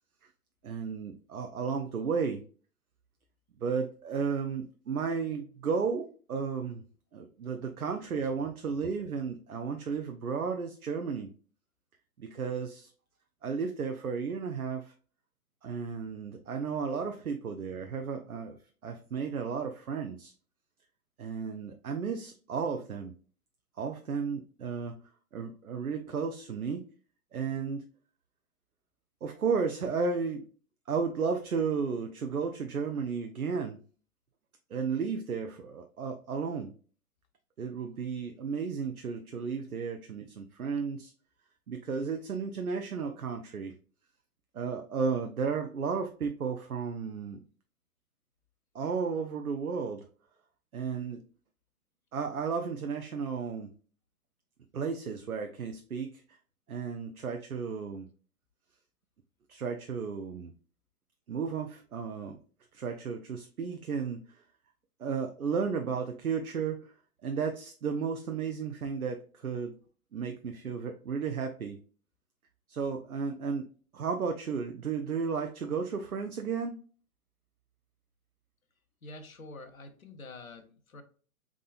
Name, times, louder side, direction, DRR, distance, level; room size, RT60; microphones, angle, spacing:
voice 1, 0.6-2.4 3.6-6.8 7.1-11.3 12.2-12.9 13.4-14.9 15.6-18.6 18.8-20.3 21.2-23.1 23.8-25.0 25.3-26.9 27.3-27.9 29.2-30.4 30.9-33.8 34.7-36.7 37.6-41.1 41.7-43.7 44.5-47.4 48.7-50.0 50.7-51.2 52.1-53.7 54.7-56.2 56.7-58.1 59.5-60.5 61.3-62.4 62.7-64.4 65.0-66.9 67.2-69.7 70.1-71.8 72.7-76.8, right 5 dB, 75° right, 0.7 m, -33 dB
voice 2, 79.0-81.0, left 2 dB, 65° left, 1.0 m, -47 dB
3.9 x 3.6 x 2.4 m
figure-of-eight pair, 125°, 44 cm